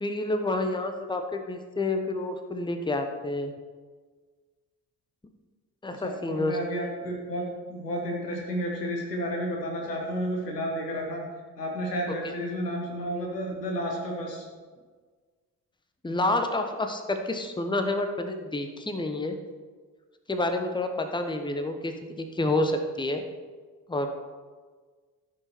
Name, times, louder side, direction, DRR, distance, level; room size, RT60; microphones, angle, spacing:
voice 1, 0.0-3.5 5.8-6.6 12.1-12.3 16.0-19.3 20.3-23.2 23.9-24.1, left 2 dB, 10° left, 6 dB, 1.1 m, -29 dB
voice 2, 6.0-11.2 11.6-14.5, equal, 85° left, 0 dB, 1.4 m, -31 dB
14.5 x 5.7 x 4.5 m, 1.5 s
figure-of-eight pair, 40°, 47 cm